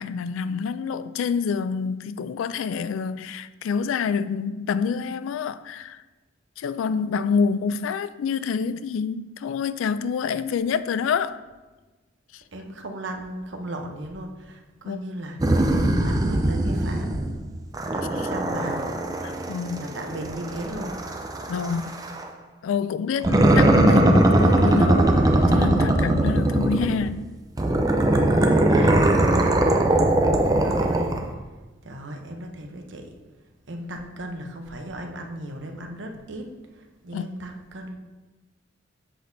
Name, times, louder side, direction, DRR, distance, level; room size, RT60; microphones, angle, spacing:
voice 1, 0.0-6.0 6.6-11.4 14.8-15.0 18.2-18.3 19.2-19.9 21.5-22.0 22.6-25.1 25.5-27.3 28.8-28.9 37.1-37.2, left 6 dB, 80° left, 0.3 m, -27 dB
voice 2, 12.5-15.4 16.0-17.3 17.9-18.9 19.7-21.0 28.9-31.2 31.8-33.1 33.7-38.0, right 1 dB, 65° right, 0.8 m, -36 dB
sound 1, 15.4-17.4 17.7-22.3 23.2-27.1 27.6-31.3, right 1 dB, 20° right, 0.5 m, -20 dB
7.6 x 6.2 x 2.7 m
head